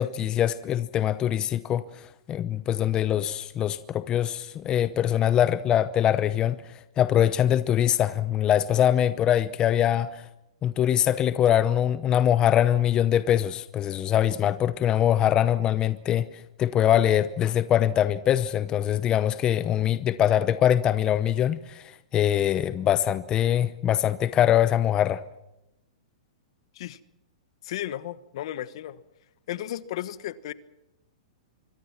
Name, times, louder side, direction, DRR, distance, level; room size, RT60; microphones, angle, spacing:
voice 1, 0.0-1.8 2.3-6.6 7.0-10.2 10.6-16.3 16.6-25.2, left 10 dB, 25° left, 0.8 m, -23 dB
voice 2, 27.6-29.0 29.5-30.5, left 12 dB, 60° left, 1.3 m, -34 dB
25.0 x 24.5 x 6.0 m
hypercardioid pair, 135°, 3 cm